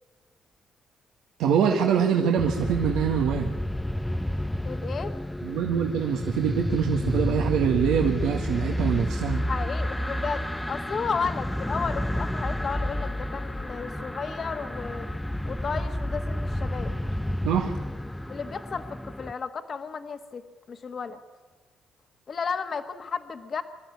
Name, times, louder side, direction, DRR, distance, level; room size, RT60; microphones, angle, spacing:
voice 1, 1.4-3.5 5.4-9.4 17.4-17.7, right 7 dB, 90° right, 1 dB, 1.7 m, -24 dB
sound 1, 2.4-19.3, left 1 dB, 5° left, 0.6 m, -30 dB
voice 2, 4.6-5.1 9.4-15.1 15.4-16.9 18.3-20.4 20.7-21.2 22.3-23.6, left 5 dB, 45° left, 8 dB, 1.5 m, -33 dB
26.0 x 13.0 x 9.7 m, 1.5 s
cardioid pair, 90°, 0 cm